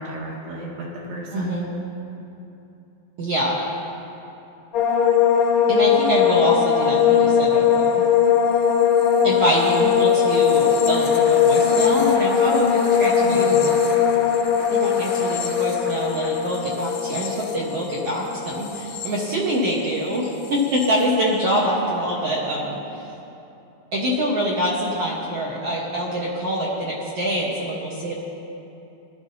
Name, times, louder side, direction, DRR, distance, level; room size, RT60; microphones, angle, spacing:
voice 1, 0.0-1.6 13.2-13.7, right 1 dB, 85° right, -5 dB, 4.3 m, -34 dB
voice 2, 1.3-1.7 3.2-3.7 5.7-8.0 9.2-13.7 14.7-23.1 23.9-28.1, equal, 60° right, -5 dB, 1.7 m, -25 dB
sound 1, 4.7-20.0 20.2-20.9, left 7 dB, 70° left, 1.6 m, -20 dB
Applause, 10.0-16.9, left 1 dB, 30° left, 1.2 m, -38 dB
21.0 x 12.5 x 2.8 m, 2.8 s
omnidirectional pair, 4.5 m